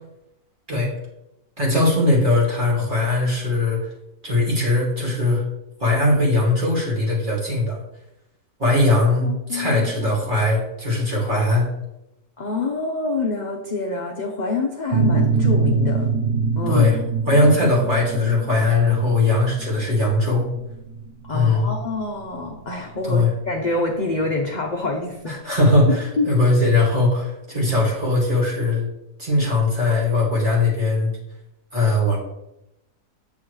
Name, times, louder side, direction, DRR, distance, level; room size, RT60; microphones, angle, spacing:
voice 1, 1.6-3.8 4.2-5.4 5.8-7.8 8.6-11.7 16.7-17.0 17.3-20.5 21.3-21.7 23.0-23.3 25.3-28.9 29.2-31.2 31.7-32.2, left 2 dB, 30° right, -4 dB, 2.5 m, -20 dB
voice 2, 9.2-10.1 12.4-16.1 16.6-16.9 21.2-25.3 26.2-26.3, left 3 dB, 40° left, 1 dB, 0.6 m, -26 dB
sound 1, 14.9-24.3, right 5 dB, 70° right, 1.2 m, -24 dB
8.7 x 7.0 x 3.2 m, 0.88 s
omnidirectional pair, 1.7 m